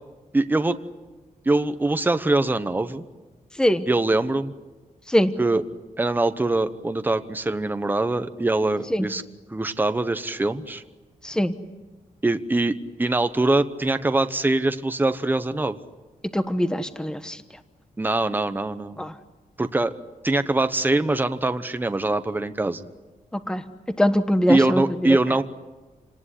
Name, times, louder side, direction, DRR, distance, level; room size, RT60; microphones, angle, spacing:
voice 1, 0.3-0.8 1.4-3.0 3.9-4.5 5.4-5.6 6.0-9.2 9.5-10.8 12.2-15.8 18.0-19.1 19.6-19.9 20.2-22.8 24.5-25.4, right 2 dB, 15° right, 10 dB, 1.0 m, -23 dB
voice 2, 16.3-17.4 19.0-19.1 23.3-23.6 24.0-24.8, equal, 5° left, 10 dB, 1.1 m, -22 dB
28.0 x 19.0 x 10.0 m, 1.2 s
wide cardioid pair, 160°, 15 cm